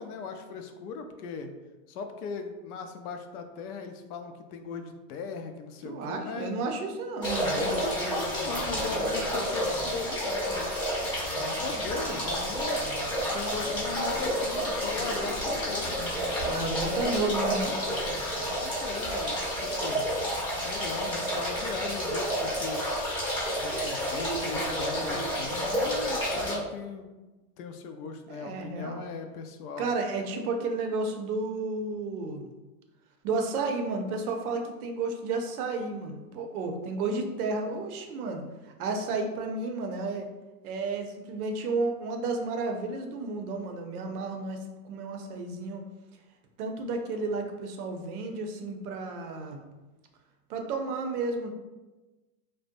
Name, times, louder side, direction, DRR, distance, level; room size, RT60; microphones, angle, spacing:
voice 1, 0.0-1.5 1.9-6.6 7.5-12.8 13.3-15.9 16.8-17.2 18.5-20.1 20.5-22.9 23.6-27.1 27.6-29.9, left 5 dB, 75° left, 6 dB, 0.5 m, -38 dB
voice 2, 5.8-7.5 16.4-17.8 28.3-29.1 29.8-32.5 33.2-40.3 40.6-45.9 46.6-49.7 50.5-51.5, right 3 dB, 70° right, 4 dB, 0.6 m, -32 dB
sound 1, 7.2-26.5, equal, 10° left, 0.7 m, -30 dB
sound 2, 11.9-17.7, left 1 dB, 40° left, 0.7 m, -42 dB
2.6 x 2.1 x 2.5 m, 1.1 s
supercardioid pair, 135°, 45 cm